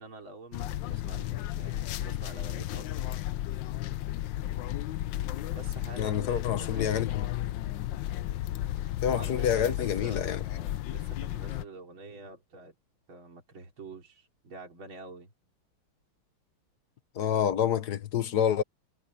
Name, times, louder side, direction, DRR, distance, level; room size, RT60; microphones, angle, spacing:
voice 1, 0.0-3.2 5.5-7.2 9.0-12.7 13.1-15.3, right 3 dB, 65° right, 4.5 m, -46 dB
sound 1, 0.5-11.6, left 13 dB, 70° left, 1.2 m, -34 dB
voice 2, 6.0-7.2 9.0-10.4 17.2-18.6, left 9 dB, 55° left, 1.5 m, -28 dB
omnidirectional pair, 2.3 m